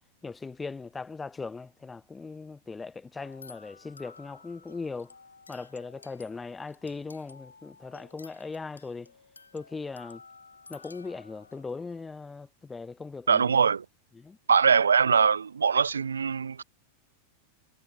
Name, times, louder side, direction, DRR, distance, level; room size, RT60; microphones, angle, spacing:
voice 1, 0.2-5.1 5.5-9.1 9.5-10.2 10.7-13.6 14.1-14.4, left 4 dB, 10° left, 1.3 m, -39 dB
sound 1, 3.2-12.1, left 4 dB, 75° left, 2.3 m, -53 dB
voice 2, 13.3-13.8 14.5-16.6, right 6 dB, 70° right, 0.4 m, -22 dB
figure-of-eight pair, 90°, 0 cm